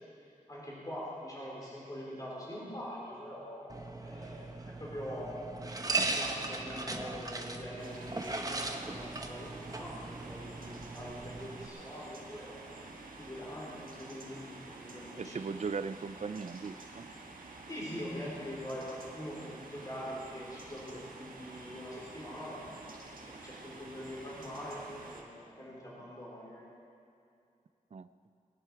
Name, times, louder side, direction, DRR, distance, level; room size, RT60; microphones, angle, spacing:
voice 1, 0.5-5.5 6.0-10.0 10.2-12.7 13.2-15.4 17.7-22.9 23.2-26.6, equal, 25° left, -5 dB, 3.8 m, -43 dB
sound 1, 3.7-11.7, right 3 dB, 25° right, 1.0 m, -38 dB
sound 2, 7.8-25.2, right 3 dB, 85° right, 1.6 m, -49 dB
voice 2, 15.2-17.1 27.9-28.1, right 5 dB, 55° right, 13 dB, 0.5 m, -38 dB
20.0 x 10.5 x 4.8 m, 2.5 s
wide cardioid pair, 90°, 14 cm